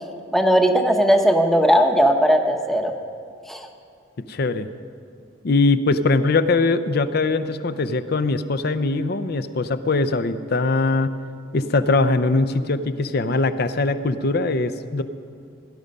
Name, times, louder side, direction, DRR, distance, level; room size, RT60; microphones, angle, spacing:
voice 1, 0.3-2.9 3.5-3.7, equal, ahead, 4 dB, 0.8 m, -17 dB
voice 2, 4.3-4.7 5.4-11.1 11.5-15.0, left 3 dB, 50° left, 12 dB, 0.6 m, -21 dB
18.0 x 11.0 x 5.3 m, 2.4 s
head